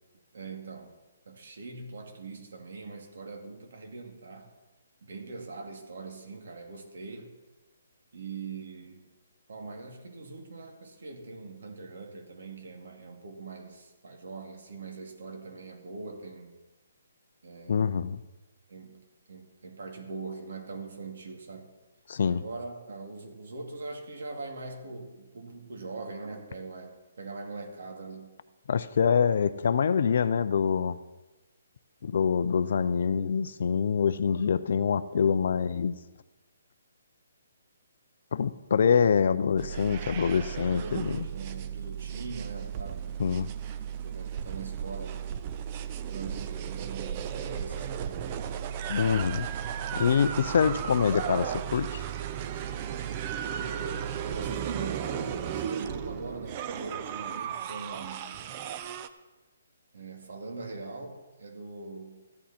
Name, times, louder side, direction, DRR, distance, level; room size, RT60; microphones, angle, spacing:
voice 1, 0.3-0.9 1.3-4.5 5.0-7.3 8.1-9.1 9.5-16.6 17.4-17.8 18.7-21.7 22.3-28.3 40.5-43.2 44.0-45.3 46.1-48.4 53.4-58.4 59.9-62.3, right 3 dB, 65° right, 3 dB, 2.5 m, -42 dB
voice 2, 17.7-18.2 22.1-22.4 28.7-31.0 32.0-35.9 38.3-41.3 43.2-43.5 48.9-49.5 49.9-52.0, left 6 dB, 50° left, 14 dB, 0.5 m, -25 dB
sound 1, 39.6-59.1, right 9 dB, 25° right, 0.5 m, -35 dB
14.5 x 11.0 x 4.4 m, 1.1 s
hypercardioid pair, 170°, 0 cm